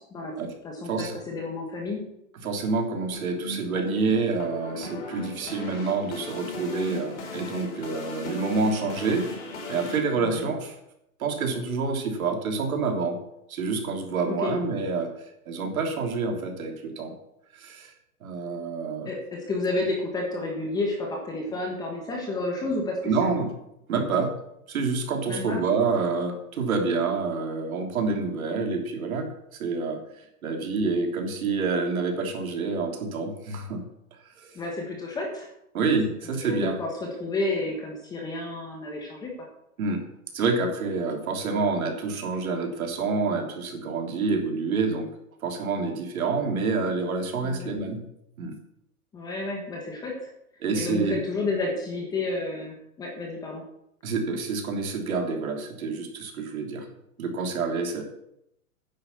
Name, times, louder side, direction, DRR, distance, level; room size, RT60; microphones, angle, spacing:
voice 1, 0.0-0.3 0.6-2.0 10.1-10.5 14.3-14.5 19.0-23.4 25.3-25.6 34.5-35.5 36.3-39.3 47.4-47.7 49.1-50.1 50.7-53.6, left 2 dB, 10° left, 0 dB, 1.3 m, -31 dB
voice 2, 0.8-1.2 2.4-9.3 9.7-10.7 11.2-13.2 13.5-15.1 15.4-17.1 17.6-17.9 18.2-19.1 23.0-23.5 23.9-24.3 24.7-30.0 30.4-33.8 34.4-34.6 35.7-36.8 39.8-40.0 40.3-45.1 45.4-48.0 48.4-48.5 50.6-51.2 54.0-56.9 57.2-58.0, right 4 dB, 65° right, 3 dB, 3.2 m, -27 dB
sound 1, 3.1-10.0, left 2 dB, 50° left, 4.6 m, -38 dB
9.7 x 8.4 x 7.0 m, 0.79 s
hypercardioid pair, 165°, 45 cm